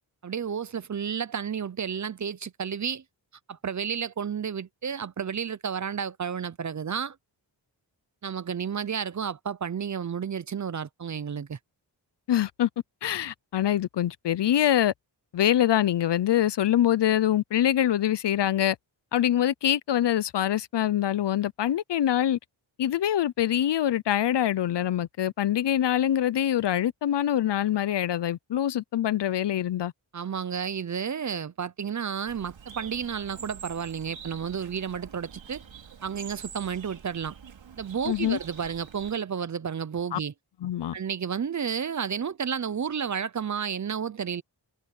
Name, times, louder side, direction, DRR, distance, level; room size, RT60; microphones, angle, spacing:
voice 1, 0.2-3.0 3.5-7.2 8.2-11.6 30.1-35.6 36.0-37.4 37.8-40.3 40.9-44.4, right 7 dB, 40° right, 0.6 m, -31 dB
voice 2, 12.3-12.7 13.0-14.9 15.3-18.8 19.1-22.4 22.8-29.9 38.1-38.4 40.1-40.2 40.6-40.9, left 11 dB, 65° left, 0.6 m, -24 dB
Bird, 32.3-39.2, right 7 dB, 85° right, 2.7 m, -46 dB
wide cardioid pair, 175°, 45 cm